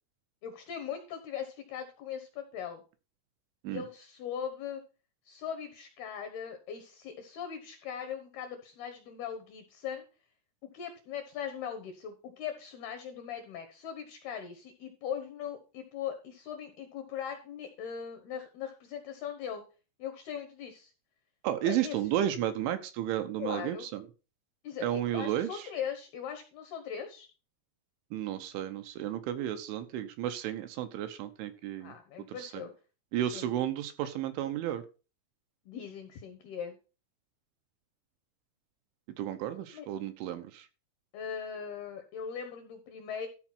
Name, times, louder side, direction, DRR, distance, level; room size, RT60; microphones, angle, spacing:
voice 1, 0.4-2.8 3.7-4.8 5.3-10.0 10.6-19.6 20.0-20.9 21.6-22.3 23.4-23.9 24.6-27.3 31.8-32.7 33.3-33.5 35.7-36.8 39.7-39.9 41.1-43.3, left 8 dB, 70° left, 7 dB, 2.5 m, -40 dB
voice 2, 21.4-24.0 24.8-25.7 28.1-31.9 32.3-32.6 33.1-34.8 39.2-40.7, right 11 dB, 75° right, 9 dB, 3.0 m, -33 dB
13.5 x 4.9 x 5.9 m, 0.33 s
omnidirectional pair, 6.0 m